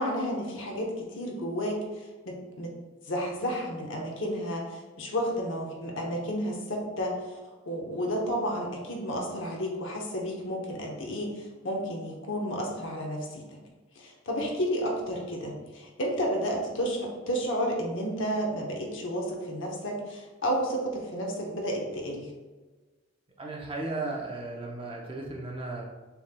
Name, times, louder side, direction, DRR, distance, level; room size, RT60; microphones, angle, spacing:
voice 1, 0.0-1.8 2.2-2.8 3.1-7.1 7.7-13.4 14.0-22.3, equal, 75° left, -1 dB, 0.9 m, -31 dB
voice 2, 23.4-25.8, right 2 dB, 25° right, -2 dB, 0.6 m, -35 dB
6.8 x 3.1 x 2.2 m, 1.3 s
head